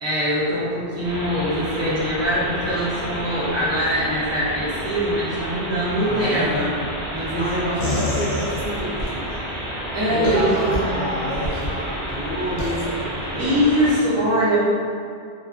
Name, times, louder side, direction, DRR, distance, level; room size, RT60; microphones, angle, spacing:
voice 1, 0.0-6.7 7.1-7.5 8.0-8.2 9.9-11.1 13.4-14.6, equal, 25° right, -10 dB, 0.4 m, -23 dB
sound 1, 1.0-14.0, right 1 dB, 60° right, 0.8 m, -30 dB
voice 2, 6.0-6.6 7.2-9.5 10.1-13.6, equal, 45° left, -14 dB, 0.7 m, -29 dB
sound 2, 7.8-9.1 10.2-10.8 11.3-11.7 12.6-12.8, left 1 dB, 85° left, 1.0 m, -26 dB
2.4 x 2.3 x 2.3 m, 2.3 s
omnidirectional pair, 1.1 m